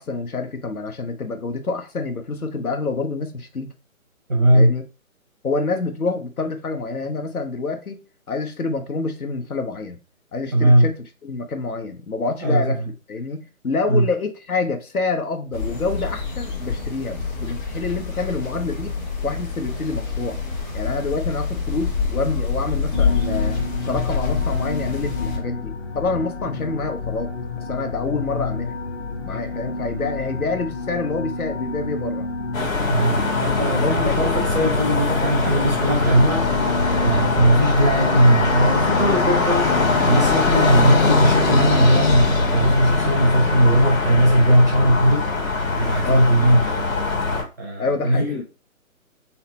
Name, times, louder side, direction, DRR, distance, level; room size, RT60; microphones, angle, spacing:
voice 1, 0.0-3.7 4.5-4.8 5.4-8.0 8.3-10.0 10.3-12.8 13.1-18.9 19.2-20.4 20.7-23.6 23.8-27.3 27.7-28.8 29.2-32.3 33.3-33.5 33.7-34.3 46.0-46.2 47.8-48.4, left 3 dB, 80° left, 1.2 m, -27 dB
voice 2, 4.3-4.7 10.5-10.9 12.4-12.9 13.9-14.1 32.9-36.6 37.0-39.7 40.0-45.3 45.8-46.9 47.6-48.4, right 1 dB, 15° right, 0.5 m, -18 dB
sound 1, 15.5-25.4, left 5 dB, 30° left, 1.8 m, -26 dB
sound 2, 22.9-41.8, left 3 dB, 45° left, 1.0 m, -30 dB
sound 3, 32.5-47.4, left 3 dB, 65° left, 2.4 m, -21 dB
4.0 x 2.8 x 4.2 m
figure-of-eight pair, 150°, 43 cm